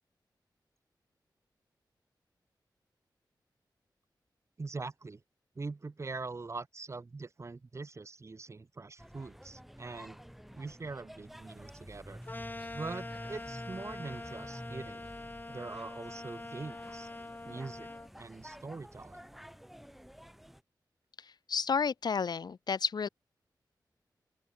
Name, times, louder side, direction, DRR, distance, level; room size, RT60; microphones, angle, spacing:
voice 1, 4.6-5.2 5.6-10.2 10.5-12.2 12.7-15.1 15.5-17.1 17.5-17.9 18.2-19.2, right 3 dB, 40° right, 3.6 m, -43 dB
sound 1, 9.0-20.6, equal, ahead, 4.5 m, -50 dB
sound 2, 12.3-18.1, left 2 dB, 25° left, 7.5 m, -44 dB
voice 2, 21.5-23.1, left 5 dB, 65° left, 1.7 m, -31 dB
open air
wide cardioid pair, 120°, 8 cm